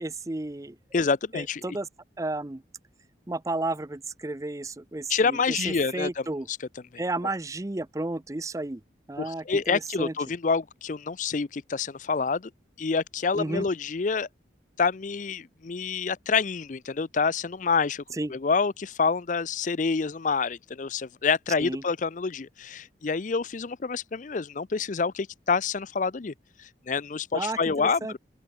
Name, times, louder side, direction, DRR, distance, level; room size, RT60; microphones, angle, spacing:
voice 1, 0.0-0.8 1.3-1.9 2.2-2.6 3.3-6.5 7.0-8.8 9.1-10.1 13.4-13.7 18.1-18.3 21.6-21.8 27.3-28.1, right 2 dB, 15° right, 0.5 m, -32 dB
voice 2, 0.9-1.6 5.1-6.6 9.2-12.5 12.8-14.3 14.8-18.0 18.3-26.3 26.6-28.2, left 5 dB, 45° left, 0.5 m, -27 dB
open air
head